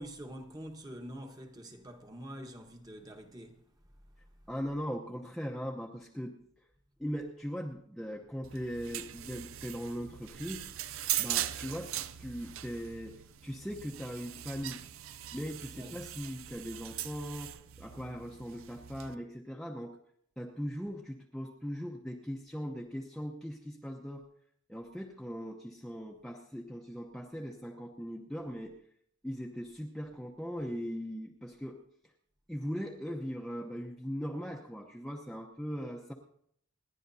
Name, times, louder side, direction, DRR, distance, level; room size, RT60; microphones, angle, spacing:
voice 1, 0.0-3.6 15.7-16.0, equal, 20° right, 1.1 m, -45 dB
voice 2, 4.5-6.3 7.0-10.7 11.2-11.9 12.2-14.8 15.3-20.0 20.4-24.2 24.7-28.7 29.2-31.8 32.5-36.1, equal, ahead, 0.8 m, -39 dB
sound 1, 8.4-19.1, right 12 dB, 85° right, 0.5 m, -40 dB
28.5 x 11.0 x 2.7 m
head